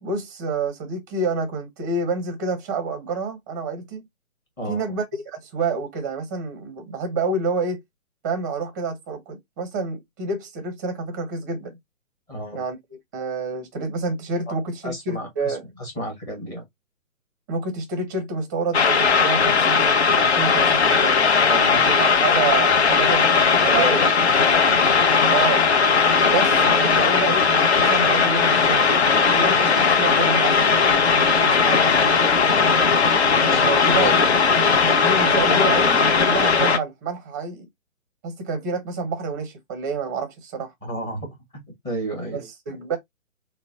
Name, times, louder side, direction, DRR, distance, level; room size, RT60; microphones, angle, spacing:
voice 1, 0.0-4.1 4.7-7.8 8.2-11.8 12.5-12.8 13.1-15.6 17.5-21.3 21.8-24.1 25.3-25.6 26.2-28.9 29.4-30.7 31.4-31.8 33.6-34.3 35.0-37.7 38.2-40.7 42.3-43.0, right 4 dB, 15° right, 0.7 m, -28 dB
voice 2, 4.6-4.9 12.3-12.6 14.5-14.6 14.8-16.6 21.5-21.8 23.5-24.9 31.6-32.0 32.6-32.8 33.4-34.1 40.8-42.4, equal, 10° left, 1.0 m, -33 dB
sound 1, 18.7-36.8, left 5 dB, 50° left, 0.9 m, -18 dB
3.9 x 2.1 x 3.6 m
figure-of-eight pair, 135°, 41 cm